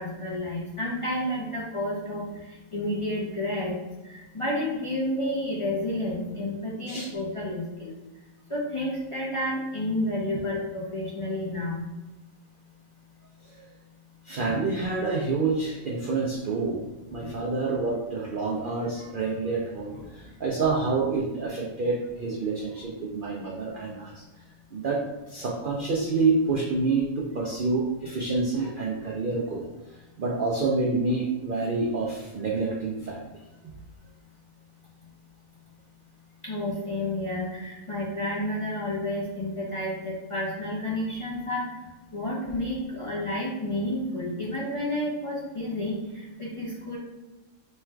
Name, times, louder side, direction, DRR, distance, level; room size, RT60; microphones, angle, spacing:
voice 1, 0.0-3.8 4.0-7.9 8.5-11.8 17.2-17.3 19.9-20.0 36.4-41.7 42.1-47.0, left 1 dB, 35° left, -6 dB, 0.5 m, -30 dB
voice 2, 14.3-16.8 17.1-24.2 24.7-25.0 25.3-29.6 30.2-33.2, right 3 dB, 75° right, -2 dB, 0.4 m, -27 dB
3.3 x 2.4 x 4.3 m, 1.1 s
omnidirectional pair, 1.5 m